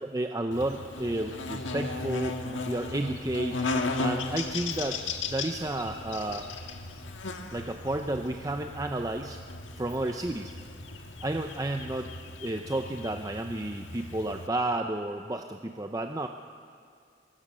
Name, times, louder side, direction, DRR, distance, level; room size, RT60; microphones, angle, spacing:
voice 1, 0.0-3.6 4.0-5.0 5.3-6.5 7.5-9.4 9.8-10.5 11.2-12.1 12.4-16.3, right 1 dB, 20° right, 5 dB, 0.6 m, -31 dB
Buzz, 0.5-14.5, left 3 dB, 85° left, 1.6 m, -36 dB
sound 1, 0.7-13.7, equal, 55° left, 7.3 m, -58 dB
24.0 x 21.5 x 6.1 m, 2.2 s
head